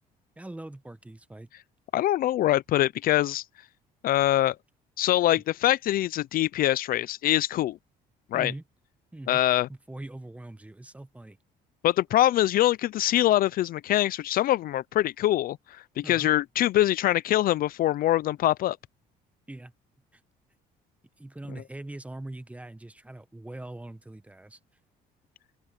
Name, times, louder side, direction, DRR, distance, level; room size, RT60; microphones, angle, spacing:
voice 1, 0.4-1.5 8.3-8.6 9.1-9.4 9.7-11.4 16.0-16.3 19.5-19.7 20.1-20.2 21.2-24.6, right 1 dB, 10° right, 1.1 m, -42 dB
voice 2, 1.9-3.4 4.0-4.6 5.0-7.8 8.3-8.5 9.3-9.7 11.8-18.8, left 14 dB, 60° left, 0.4 m, -24 dB
open air
cardioid pair, 110°, 17 cm